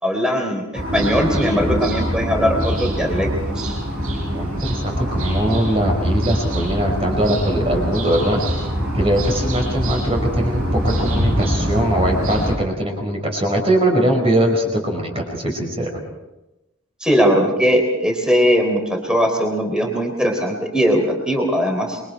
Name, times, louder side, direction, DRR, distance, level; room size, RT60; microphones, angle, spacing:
voice 1, 0.0-3.7 17.0-22.0, equal, 5° right, 2 dB, 3.6 m, -19 dB
sound 1, 0.7-12.6, equal, 70° right, 7.4 m, -23 dB
voice 2, 4.3-8.7 8.9-15.9, right 1 dB, 25° right, 1 dB, 5.0 m, -21 dB
27.0 x 23.0 x 4.6 m, 1.0 s
head